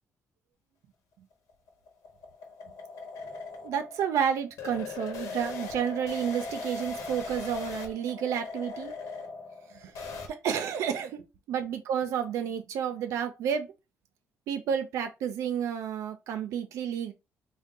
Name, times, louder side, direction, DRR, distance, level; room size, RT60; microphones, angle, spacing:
sound 1, 1.3-10.3, left 4 dB, 85° left, 1.1 m, -39 dB
voice 1, 3.6-8.9 9.7-9.9 10.3-13.7 14.5-17.1, right 8 dB, 85° right, 0.5 m, -31 dB
3.6 x 2.2 x 3.7 m
cardioid pair, 130°, 5 cm